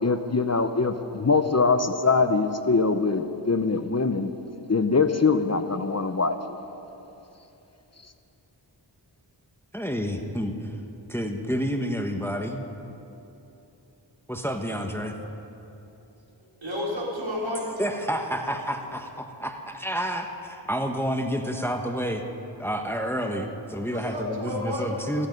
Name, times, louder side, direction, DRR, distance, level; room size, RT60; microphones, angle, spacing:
voice 1, 0.0-4.3 4.7-6.4, left 4 dB, 35° left, 9 dB, 0.7 m, -23 dB
voice 2, 9.7-10.7 11.1-12.6 14.3-15.1 17.8-22.2 22.6-25.3, equal, 5° left, 4 dB, 1.1 m, -29 dB
voice 3, 16.4-17.7 23.9-25.0, left 1 dB, 80° right, -4 dB, 3.7 m, -31 dB
16.0 x 14.5 x 5.3 m, 3.0 s
wide cardioid pair, 55°, 46 cm